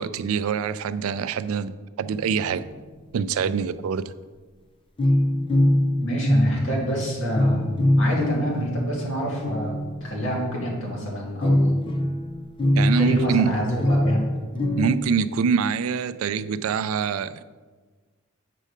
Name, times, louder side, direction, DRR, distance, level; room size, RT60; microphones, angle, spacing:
voice 1, 0.0-2.6 3.1-4.1 12.8-13.6 14.8-17.4, right 6 dB, 75° right, 15 dB, 0.3 m, -25 dB
sound 1, 2.0-2.7 5.0-10.7 11.4-15.0, left 1 dB, 25° left, 0.4 m, -23 dB
voice 2, 6.0-9.7 10.0-11.8 13.0-14.3, equal, 65° left, -3 dB, 2.3 m, -27 dB
7.5 x 5.3 x 5.1 m, 1.4 s
head